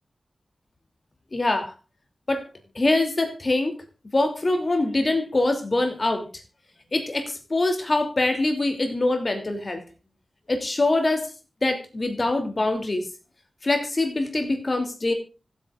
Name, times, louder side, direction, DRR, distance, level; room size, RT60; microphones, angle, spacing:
voice 1, 1.3-1.7 2.3-2.4 2.7-3.8 4.1-6.4 6.9-9.8 10.5-11.3 11.6-13.1 13.6-15.1, left 2 dB, 40° left, 6 dB, 2.7 m, -24 dB
24.5 x 8.5 x 2.4 m, 0.32 s
wide cardioid pair, 70°, 0 cm